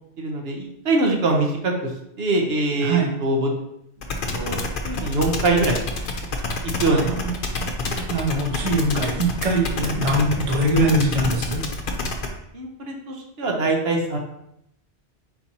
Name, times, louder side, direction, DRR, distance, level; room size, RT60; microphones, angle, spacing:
voice 1, 0.2-1.9 2.2-3.5 4.3-4.6 4.8-5.8 6.8-7.2 12.5-14.2, right 2 dB, 70° right, 1 dB, 1.0 m, -23 dB
voice 2, 2.8-3.1 6.9-7.3 8.1-11.6, right 1 dB, 35° right, 0 dB, 0.8 m, -22 dB
sound 1, 4.0-12.3, left 3 dB, 60° left, 0.8 m, -27 dB
4.5 x 4.1 x 2.8 m, 0.76 s
omnidirectional pair, 1.1 m